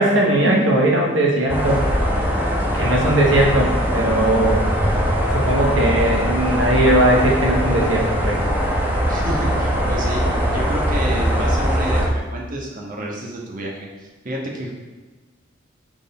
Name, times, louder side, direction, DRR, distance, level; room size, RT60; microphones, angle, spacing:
voice 1, 0.0-1.8 2.7-4.6 5.3-8.4, right 1 dB, 65° right, -1 dB, 1.2 m, -18 dB
sound 1, 1.5-12.1, equal, 10° right, 1.0 m, -21 dB
voice 2, 9.1-10.2 10.5-14.7, right 1 dB, 40° right, -2 dB, 1.3 m, -29 dB
6.4 x 6.3 x 4.3 m, 1.3 s
head